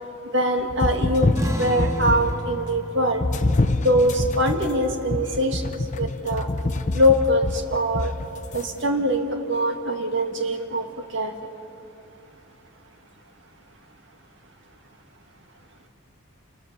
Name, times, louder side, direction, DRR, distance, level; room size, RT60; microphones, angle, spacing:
voice 1, 0.3-3.2 3.8-6.5 6.9-8.1 8.5-10.9 11.1-11.3, equal, 60° right, 5 dB, 2.1 m, -23 dB
sound 1, 0.7-2.5 3.2-8.6, left 2 dB, 35° left, 0.7 m, -26 dB
sound 2, 1.3-6.4, equal, 15° right, 1.2 m, -35 dB
28.0 x 21.0 x 6.9 m, 3.0 s
head